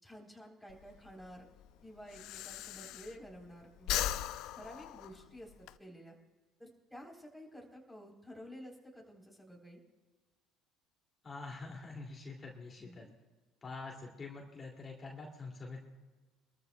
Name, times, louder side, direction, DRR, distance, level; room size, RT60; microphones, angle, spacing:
voice 1, 0.0-1.5 1.8-4.1 4.5-6.2 6.6-9.8 12.8-13.1, equal, ahead, -1 dB, 3.6 m, -51 dB
Breathing, 0.7-3.5 3.8-5.7, left 12 dB, 65° left, 0.5 m, -38 dB
voice 2, 11.2-13.1 13.6-15.8, left 3 dB, 30° left, -1 dB, 2.5 m, -46 dB
25.5 x 13.5 x 2.3 m, 1.3 s
hypercardioid pair, 65°, 0 cm